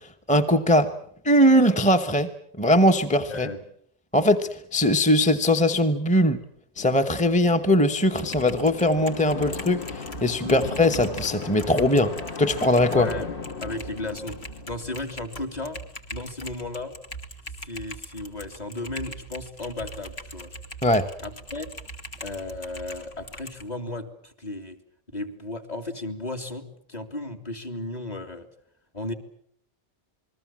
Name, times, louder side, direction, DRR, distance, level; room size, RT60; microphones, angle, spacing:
voice 1, 0.3-0.9 1.2-2.3 2.6-3.5 4.1-6.4 6.8-12.1 12.4-13.1 20.8-21.1, left 1 dB, 10° left, 6 dB, 0.9 m, -20 dB
voice 2, 3.3-3.6 10.4-10.6 13.0-13.3 13.6-14.4 14.7-15.8 16.1-16.9 17.6-20.5 21.2-21.7 22.2-24.8 25.1-28.5 28.9-29.1, left 2 dB, 40° left, 4 dB, 2.6 m, -34 dB
sound 1, 6.8-15.6, left 5 dB, 55° left, 1.7 m, -38 dB
Typing, 8.1-23.6, equal, 75° left, 2.5 m, -41 dB
28.0 x 21.0 x 7.4 m, 0.66 s
omnidirectional pair, 1.1 m